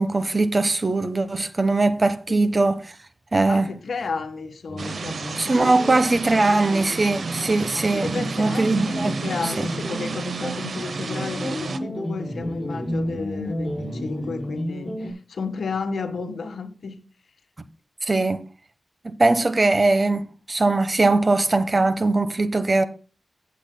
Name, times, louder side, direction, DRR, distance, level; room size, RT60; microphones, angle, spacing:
voice 1, 0.0-2.8 3.3-3.7 5.4-9.1 9.6-9.7 18.0-18.4 19.0-22.8, right 2 dB, 35° right, 1.1 m, -21 dB
voice 2, 3.5-5.7 6.1-6.2 7.9-17.0, left 4 dB, 85° left, 1.5 m, -33 dB
sound 1, 4.7-15.1, equal, 10° left, 5.5 m, -33 dB
sound 2, 4.8-11.8, right 4 dB, 70° right, 0.8 m, -31 dB
17.0 x 7.8 x 2.2 m
wide cardioid pair, 95°, 0 cm